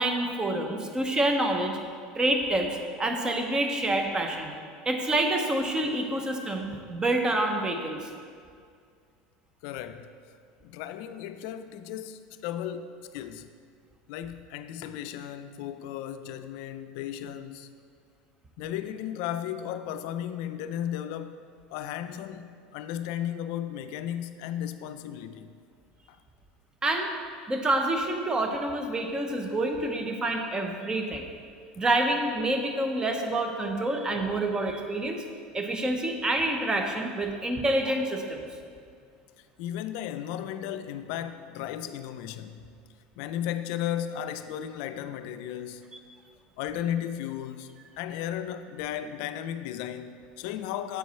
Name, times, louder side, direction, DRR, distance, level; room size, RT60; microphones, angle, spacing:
voice 1, 0.0-1.8 2.2-2.7 3.0-4.5 4.9-8.0 26.8-27.1 27.5-31.3 31.8-35.2 35.5-38.4, right 1 dB, 20° right, 0.8 m, -27 dB
voice 2, 9.6-10.1 10.6-13.5 14.1-17.7 18.6-21.4 21.7-25.5 26.1-26.2 39.6-42.7 43.2-45.9 46.6-51.0, left 10 dB, 70° left, 0.4 m, -35 dB
8.1 x 4.6 x 4.2 m
supercardioid pair, 110°, 4 cm